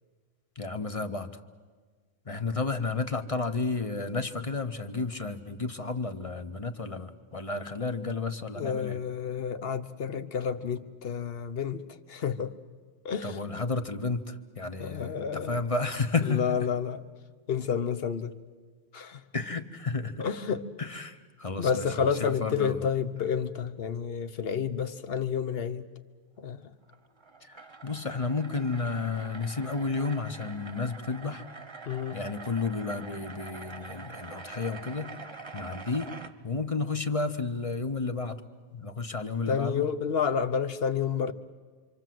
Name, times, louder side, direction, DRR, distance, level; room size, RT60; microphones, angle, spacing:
voice 1, 0.6-1.4 2.3-9.0 13.2-16.7 19.3-20.3 20.8-22.8 27.4-31.4 32.1-35.1 35.5-36.1 36.4-38.4 38.7-39.9, left 4 dB, 30° left, 1.1 m, -32 dB
voice 2, 8.5-12.6 13.0-13.4 14.8-15.6 16.2-17.0 17.5-18.4 18.9-19.2 20.2-20.7 21.6-25.9 26.4-26.7 31.9-32.2 39.5-41.3, left 7 dB, 55° left, 1.1 m, -30 dB
sound 1, 26.8-36.3, right 4 dB, 25° right, 1.1 m, -45 dB
26.5 x 26.0 x 7.7 m
omnidirectional pair, 1.3 m